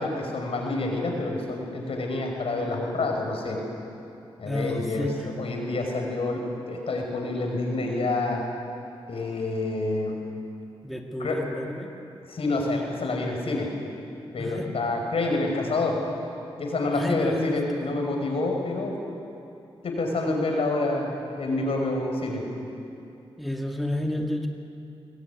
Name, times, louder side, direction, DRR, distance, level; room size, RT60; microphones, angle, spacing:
voice 1, 0.0-3.6 4.4-8.4 9.1-10.2 11.2-11.5 12.3-13.7 14.3-16.0 16.6-19.0 19.8-21.1 21.4-22.4, left 2 dB, 70° left, 1 dB, 5.6 m, -28 dB
voice 2, 4.4-5.1 10.8-11.9 14.4-14.7 16.9-17.9 23.4-24.5, left 1 dB, ahead, 2 dB, 2.2 m, -30 dB
22.5 x 20.0 x 9.7 m, 2.8 s
cardioid pair, 65°, 10 cm